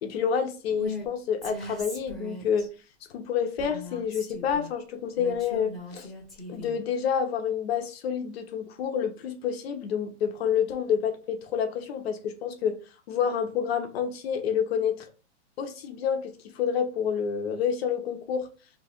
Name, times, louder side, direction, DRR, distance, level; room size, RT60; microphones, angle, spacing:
voice 1, 0.0-2.7 3.1-6.1 6.5-12.8 13.1-15.1 15.6-18.5, left 7 dB, 60° left, 0.9 m, -28 dB
Female speech woman speaking, 0.7-1.1 1.4-2.7 3.6-4.7 5.2-6.8, left 2 dB, ahead, 1.0 m, -39 dB
3.0 x 2.4 x 4.3 m
hypercardioid pair, 150°, 35 cm